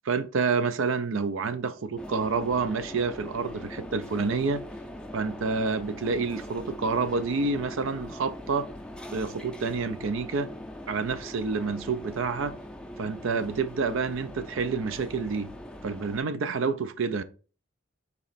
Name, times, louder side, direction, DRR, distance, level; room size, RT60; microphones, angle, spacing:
voice 1, 0.1-4.6 5.1-8.7 9.1-10.5 10.9-12.6 13.0-15.5 15.8-17.2, right 4 dB, 70° right, 0.5 m, -28 dB
sound 1, 2.0-16.2, left 1 dB, 5° left, 0.5 m, -41 dB
4.1 x 3.0 x 4.0 m
head